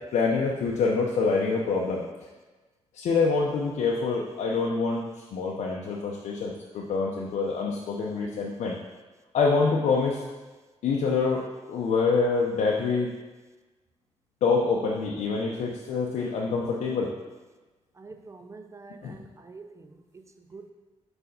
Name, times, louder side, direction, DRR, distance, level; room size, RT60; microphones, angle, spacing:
voice 1, 0.1-2.0 2.9-8.8 9.3-10.2 10.8-13.1 14.4-17.1 19.0-19.2, left 4 dB, 85° left, -2 dB, 0.6 m, -26 dB
voice 2, 18.0-19.6 20.5-20.7, right 4 dB, 25° right, 7 dB, 0.5 m, -45 dB
4.7 x 4.3 x 5.0 m, 1.2 s
cardioid pair, 95°, 12 cm